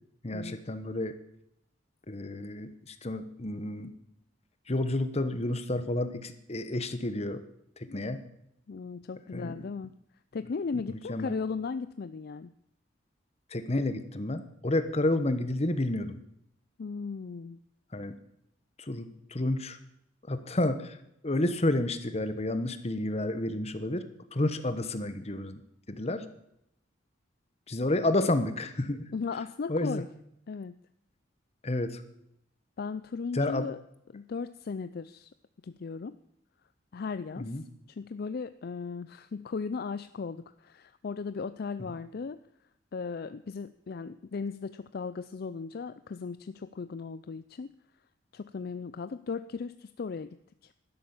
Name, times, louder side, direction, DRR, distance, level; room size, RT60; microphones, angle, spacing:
voice 1, 0.2-1.1 2.1-3.9 4.7-7.4 7.8-8.2 9.3-9.6 10.9-11.3 13.5-16.2 17.9-18.2 18.8-19.8 20.3-21.0 21.2-25.6 25.9-26.2 27.7-29.0 29.7-30.0 31.6-32.0 33.3-33.7 37.4-37.6, left 1 dB, 35° left, 10 dB, 1.2 m, -30 dB
voice 2, 8.7-9.9 10.3-12.5 16.8-17.6 29.1-30.1 30.5-30.7 32.8-33.8 34.1-35.3 35.6-36.1 36.9-37.6 37.9-42.4 42.9-47.7 48.3-50.4 50.6-50.7, left 5 dB, 55° left, 12 dB, 0.4 m, -36 dB
12.0 x 11.0 x 7.2 m, 0.77 s
head